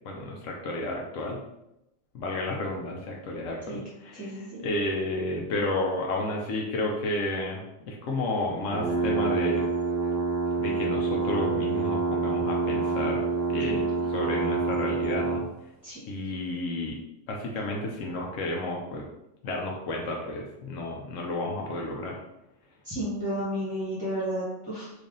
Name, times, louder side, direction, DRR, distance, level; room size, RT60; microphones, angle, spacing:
voice 1, 0.0-1.4 2.1-9.7 10.6-13.2 13.5-15.4 16.1-17.0 17.3-19.0 19.4-22.2, left 1 dB, 80° left, -1 dB, 1.0 m, -31 dB
voice 2, 4.1-4.6 13.7-14.0 15.8-16.0 22.8-24.9, equal, 5° right, -9 dB, 0.9 m, -32 dB
sound 1, 8.7-15.5, right 4 dB, 20° right, 0.4 m, -27 dB
3.3 x 2.6 x 3.7 m, 0.87 s
omnidirectional pair, 1.3 m